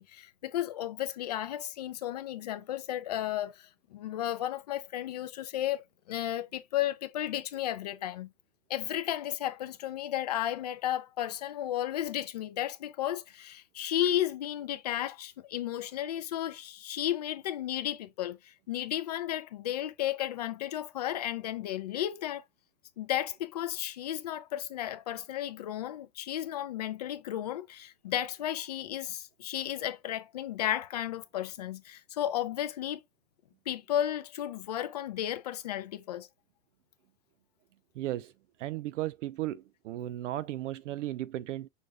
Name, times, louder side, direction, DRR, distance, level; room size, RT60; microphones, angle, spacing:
voice 1, 0.0-8.3 8.7-22.4 23.0-33.0 33.7-36.3, left 12 dB, 30° left, 0.4 m, -33 dB
voice 2, 38.0-38.3 38.6-41.7, right 14 dB, 60° right, 0.5 m, -35 dB
6.4 x 2.5 x 3.1 m
supercardioid pair, 170°, 42 cm